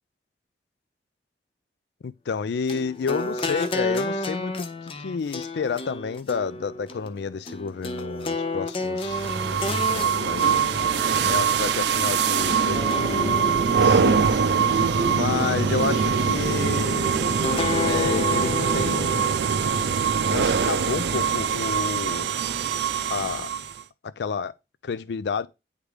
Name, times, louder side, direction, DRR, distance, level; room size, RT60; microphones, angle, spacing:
voice 1, 2.0-10.6 11.2-14.4 15.1-17.1 17.8-19.3 20.3-22.3 23.1-23.5 24.0-24.5 24.8-25.5, left 5 dB, 75° left, 0.4 m, -30 dB
sound 1, 2.7-12.1 12.7-14.3 14.8-15.9 17.4-19.4, left 2 dB, 30° left, 0.6 m, -31 dB
sound 2, 9.0-23.8, right 6 dB, 80° right, 0.5 m, -23 dB
sound 3, 10.8-17.4, equal, 15° right, 0.8 m, -36 dB
9.6 x 3.7 x 3.3 m
head